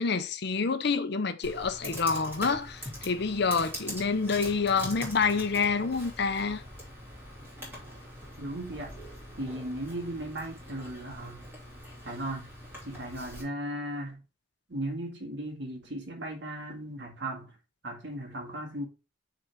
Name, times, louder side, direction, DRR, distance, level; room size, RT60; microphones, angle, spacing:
voice 1, 0.0-6.6, left 4 dB, 60° left, 0.7 m, -28 dB
Computer keyboard, 1.4-13.4, equal, 10° right, 3.2 m, -43 dB
voice 2, 8.4-8.9 9.4-11.4 12.1-12.5 12.8-14.2 14.7-17.5 17.8-18.9, right 1 dB, 65° right, 1.8 m, -36 dB
6.5 x 3.9 x 4.6 m
head